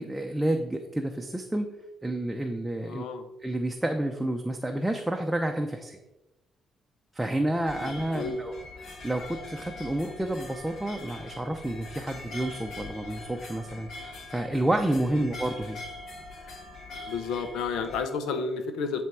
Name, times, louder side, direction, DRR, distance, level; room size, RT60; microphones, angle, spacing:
voice 1, 0.0-1.8 2.0-3.0 3.4-6.0 7.1-8.6 8.8-13.9 14.3-15.8, right 1 dB, 10° right, 3 dB, 0.7 m, -29 dB
voice 2, 2.8-3.3 7.8-8.4 15.1-15.3 17.1-19.1, left 5 dB, 90° left, 8 dB, 0.8 m, -32 dB
sound 1, 7.5-18.0, left 2 dB, 65° left, 2.4 m, -43 dB
10.5 x 3.5 x 4.7 m, 0.95 s
cardioid pair, 90°, 0 cm